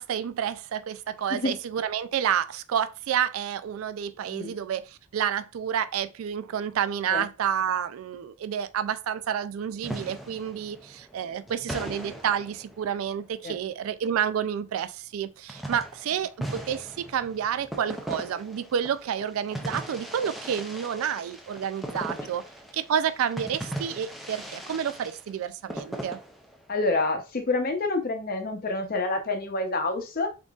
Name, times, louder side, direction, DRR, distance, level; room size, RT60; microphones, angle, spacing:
voice 1, 0.0-22.4 22.7-26.2, right 8 dB, 80° right, 0.3 m, -29 dB
sound 1, 9.8-13.3 15.5-26.8, right 1 dB, ahead, 0.5 m, -39 dB
voice 2, 26.7-30.3, left 2 dB, 45° left, 0.7 m, -28 dB
3.8 x 3.8 x 2.3 m
head